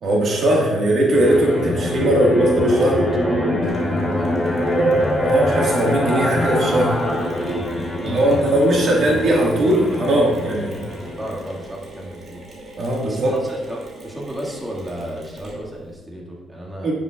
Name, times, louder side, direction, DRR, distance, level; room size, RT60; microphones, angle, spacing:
voice 1, 0.0-3.0 5.2-6.9 8.0-10.8 12.8-13.3 16.8-16.9, right 1 dB, 60° right, -2 dB, 1.7 m, -19 dB
sound 1, 1.1-11.6, equal, 5° left, 2.5 m, -23 dB
voice 2, 3.2-4.9 7.9-8.4 11.0-12.4 13.0-16.9, equal, 15° right, -3 dB, 1.9 m, -33 dB
Mechanisms, 3.6-15.9, right 1 dB, 40° right, 2.5 m, -40 dB
10.0 x 7.4 x 2.4 m, 1.3 s
cardioid pair, 90°, 0 cm